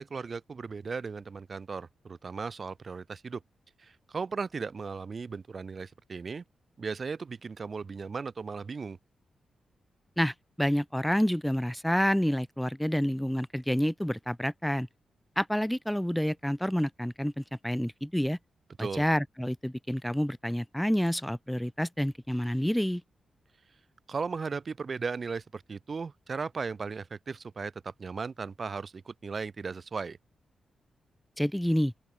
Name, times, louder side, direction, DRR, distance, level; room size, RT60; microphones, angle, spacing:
voice 1, 0.0-3.4 3.8-6.4 6.8-9.0 18.8-19.0 24.1-30.2, right 5 dB, 50° right, 5.5 m, -36 dB
voice 2, 10.2-14.9 15.4-18.4 18.8-23.0 31.4-31.9, equal, 5° left, 3.5 m, -28 dB
open air
cardioid pair, 60°, 0 cm